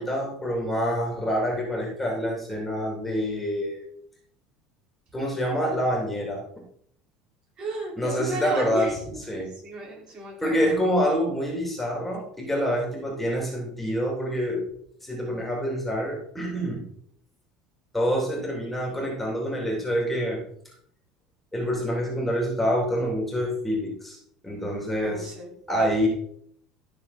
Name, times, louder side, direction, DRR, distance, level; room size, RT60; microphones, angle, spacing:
voice 1, 0.0-3.8 5.1-6.4 8.0-9.0 9.3-9.5 10.4-14.6 15.0-16.9 17.9-20.4 21.5-24.2 24.4-25.3 25.7-26.1, equal, 5° left, -1 dB, 3.2 m, -26 dB
voice 2, 7.6-9.2 9.6-10.6 25.0-25.6, right 1 dB, 45° right, -2 dB, 5.0 m, -33 dB
13.5 x 6.6 x 4.3 m, 0.65 s
supercardioid pair, 120°, 2 cm